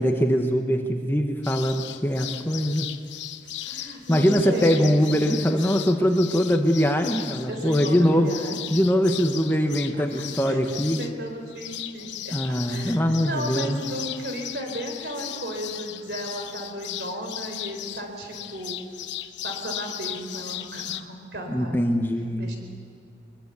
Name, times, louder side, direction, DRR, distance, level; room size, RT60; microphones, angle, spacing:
voice 1, 0.0-2.9 4.1-8.3 8.7-11.0 12.3-13.8 21.5-22.5, equal, 10° left, 4 dB, 1.2 m, -22 dB
sound 1, 1.4-21.0, left 12 dB, 70° left, 0.9 m, -37 dB
voice 2, 3.6-5.7 7.5-8.6 10.5-18.8 19.4-21.8 22.4-22.6, equal, 60° right, 3 dB, 4.4 m, -35 dB
22.0 x 22.0 x 8.3 m, 2.3 s
head